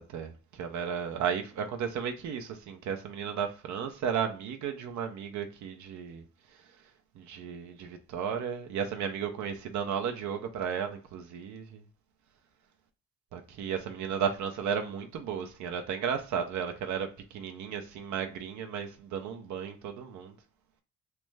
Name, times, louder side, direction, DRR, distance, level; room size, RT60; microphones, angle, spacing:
voice 1, 0.6-6.2 7.2-11.6 13.3-20.3, right 7 dB, 70° right, 0.6 m, -34 dB
3.2 x 2.1 x 3.2 m
cardioid pair, 90°, 30 cm